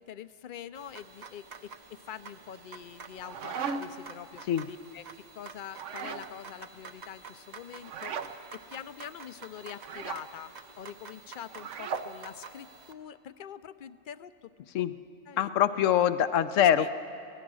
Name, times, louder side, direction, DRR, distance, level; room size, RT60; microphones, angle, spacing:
voice 1, 0.0-5.0 5.3-14.5 15.3-15.6 16.6-16.9, left 9 dB, 55° left, 13 dB, 0.6 m, -45 dB
sound 1, 0.7-12.9, right 5 dB, 40° right, 0.8 m, -49 dB
sound 2, 3.0-4.1 5.7-6.3 7.8-8.3 9.8-10.2 11.5-12.1, right 6 dB, 75° right, 1.2 m, -36 dB
voice 2, 15.4-16.9, left 10 dB, 80° left, 11 dB, 1.1 m, -24 dB
23.5 x 18.0 x 6.3 m, 2.5 s
omnidirectional pair, 1.3 m